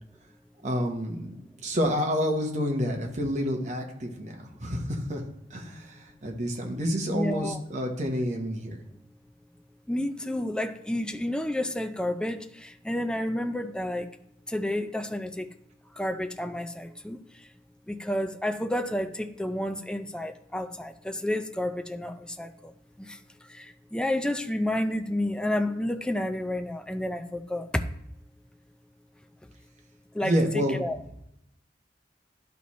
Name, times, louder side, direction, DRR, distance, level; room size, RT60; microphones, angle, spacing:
voice 1, 0.6-5.2 5.5-8.8 30.2-30.8, equal, 40° right, 1 dB, 1.1 m, -29 dB
voice 2, 7.1-7.6 9.9-14.1 14.5-15.5 15.9-17.5 17.9-22.7 23.0-23.2 23.5-27.8 30.1-31.0, left 1 dB, 5° left, 7 dB, 0.4 m, -30 dB
11.5 x 4.2 x 3.1 m, 0.77 s
head